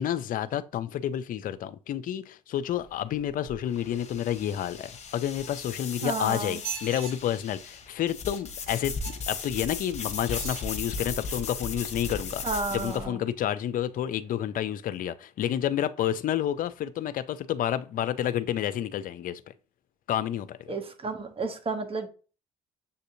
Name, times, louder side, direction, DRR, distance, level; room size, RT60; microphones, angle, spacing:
voice 1, 0.0-19.5 20.1-20.7, left 11 dB, 60° left, 0.5 m, -30 dB
sound 1, 2.7-13.0, left 4 dB, 45° left, 1.1 m, -37 dB
sound 2, 5.4-6.1 6.5-7.1 9.0-9.4 10.2-10.7 11.3-11.4, right 7 dB, 70° right, 2.2 m, -39 dB
voice 2, 6.0-6.6 12.4-13.2 20.7-22.1, right 3 dB, 35° right, 1.1 m, -32 dB
6.9 x 2.6 x 2.6 m
hypercardioid pair, 55°, 16 cm